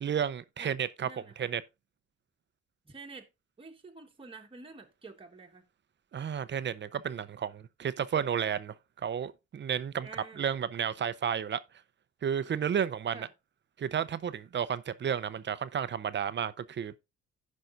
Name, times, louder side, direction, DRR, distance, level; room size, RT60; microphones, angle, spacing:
voice 1, 0.0-1.1 1.4-1.6 6.1-10.1 10.4-11.6 12.2-13.3 13.8-17.0, right 8 dB, 40° right, 0.6 m, -32 dB
voice 2, 1.0-1.5 2.8-3.3 3.6-5.7 10.0-10.4 13.1-13.3, right 3 dB, 20° right, 1.3 m, -48 dB
16.0 x 5.4 x 2.5 m
cardioid pair, 90°, 30 cm